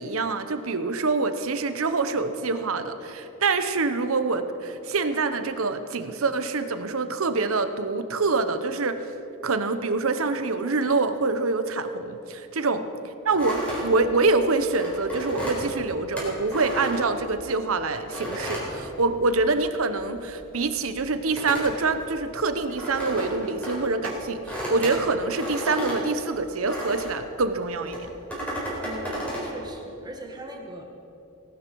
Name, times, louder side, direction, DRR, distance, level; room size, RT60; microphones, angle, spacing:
voice 1, 0.0-9.0 9.4-12.8 13.3-28.0, right 3 dB, 75° right, 10 dB, 0.9 m, -25 dB
sound 1, 13.3-17.6 18.1-19.6 19.9-27.3 27.8-29.5, equal, 5° left, 4.2 m, -33 dB
voice 2, 28.8-30.8, equal, 20° right, 2 dB, 1.6 m, -40 dB
18.5 x 12.0 x 4.7 m, 2.8 s
head